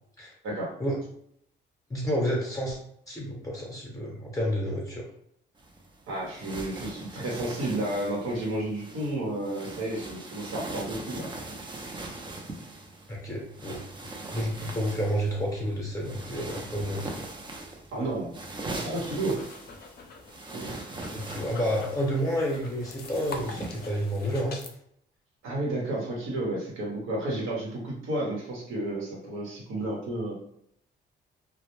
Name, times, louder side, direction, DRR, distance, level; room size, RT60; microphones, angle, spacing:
voice 1, 1.9-2.8 3.1-5.1 13.1-17.1 21.1-24.6, equal, 15° left, -3 dB, 0.7 m, -30 dB
sound 1, 5.6-24.0, right 2 dB, 25° right, 0.5 m, -41 dB
voice 2, 6.1-11.3 17.9-18.4 18.8-19.4 20.5-20.7 25.4-30.3, right 1 dB, 85° right, -3 dB, 0.9 m, -31 dB
sound 2, 19.0-24.7, left 4 dB, 50° left, 0.5 m, -45 dB
2.1 x 2.1 x 3.0 m, 0.70 s
cardioid pair, 90°, 20 cm